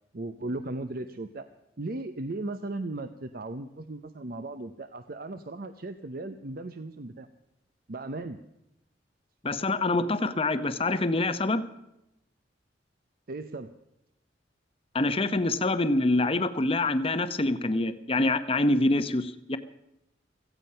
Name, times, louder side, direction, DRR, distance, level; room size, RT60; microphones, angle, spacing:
voice 1, 0.1-1.5 1.8-7.3 7.9-8.4 13.3-13.7, right 2 dB, 50° right, 10 dB, 0.8 m, -36 dB
voice 2, 9.4-11.6 14.9-19.6, left 2 dB, 30° left, 11 dB, 0.9 m, -25 dB
17.0 x 15.0 x 5.6 m, 0.86 s
head